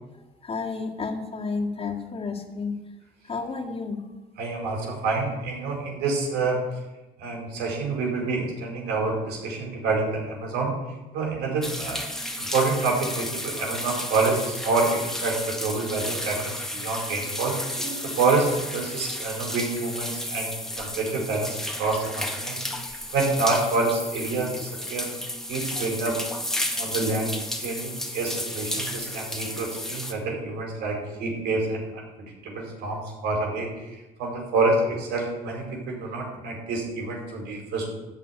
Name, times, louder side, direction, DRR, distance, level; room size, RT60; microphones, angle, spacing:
voice 1, 0.4-2.8 3.2-4.1, left 4 dB, 35° left, 1 dB, 2.1 m, -31 dB
voice 2, 4.4-6.7 7.2-12.0 12.3-25.1 25.5-26.2 26.7-37.9, right 3 dB, 85° right, 0 dB, 4.7 m, -27 dB
sound 1, 11.6-30.1, left 1 dB, 5° left, 1.6 m, -33 dB
13.5 x 5.6 x 9.4 m, 1.1 s
cardioid pair, 110°, 17 cm